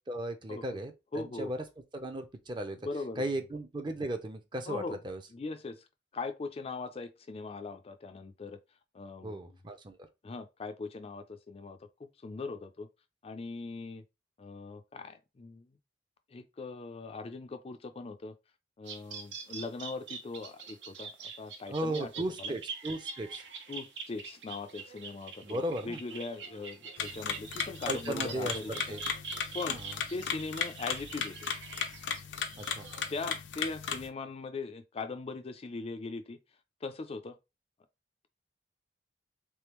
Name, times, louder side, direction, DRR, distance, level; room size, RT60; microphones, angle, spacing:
voice 1, 0.1-1.6 1.9-2.8 3.2-5.2 9.2-10.1 21.7-23.4 25.4-26.0 27.9-29.0 29.7-30.0 32.6-32.9, right 1 dB, 25° right, 0.5 m, -36 dB
voice 2, 1.1-1.5 2.8-3.2 4.7-5.0 5.3-5.8 6.1-8.6 8.9-9.4 10.2-12.9 13.2-14.0 14.4-15.7 16.3-18.3 18.8-22.1 22.4-22.5 23.7-28.7 29.5-29.8 30.1-31.5 33.1-36.4 36.8-37.4, left 3 dB, 35° left, 0.4 m, -40 dB
sound 1, 18.8-33.3, right 5 dB, 75° right, 0.7 m, -44 dB
sound 2, 27.0-34.1, left 7 dB, 85° left, 0.5 m, -36 dB
3.5 x 3.2 x 3.0 m
head